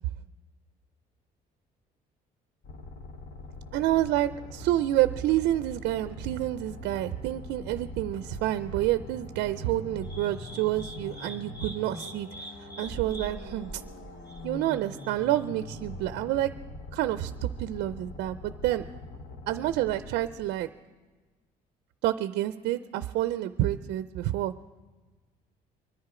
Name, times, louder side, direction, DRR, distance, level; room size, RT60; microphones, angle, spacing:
sound 1, 2.6-20.7, left 1 dB, 65° left, 1.5 m, -43 dB
voice 1, 3.7-13.8 14.4-16.5 16.9-18.9 19.5-20.7 22.0-24.5, right 14 dB, 85° right, 12 dB, 0.5 m, -28 dB
sound 2, 10.0-15.4, right 1 dB, 20° left, 1.6 m, -44 dB
24.0 x 10.5 x 4.9 m, 1.3 s
cardioid pair, 110°, 17 cm